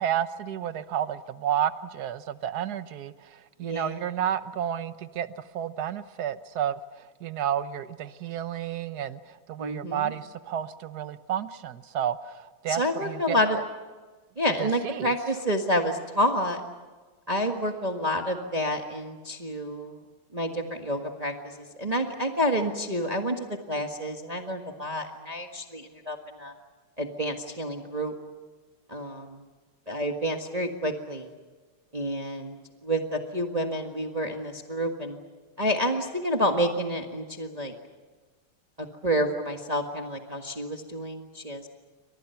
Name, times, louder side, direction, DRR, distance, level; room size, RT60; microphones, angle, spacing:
voice 1, 0.0-3.1 3.6-5.3 5.5-6.8 7.2-9.2 9.5-12.4 12.6-13.6 14.6-15.4, right 10 dB, 55° right, 12 dB, 1.3 m, -31 dB
voice 2, 3.6-4.0 9.6-10.1 12.7-13.6 14.4-16.6 17.3-20.0 20.3-26.5 27.0-28.1 28.9-29.4 29.9-31.3 31.9-32.6 32.8-35.2 35.6-37.7 38.8-41.7, equal, 20° right, 3 dB, 1.5 m, -29 dB
29.5 x 25.5 x 5.8 m, 1.4 s
omnidirectional pair, 2.4 m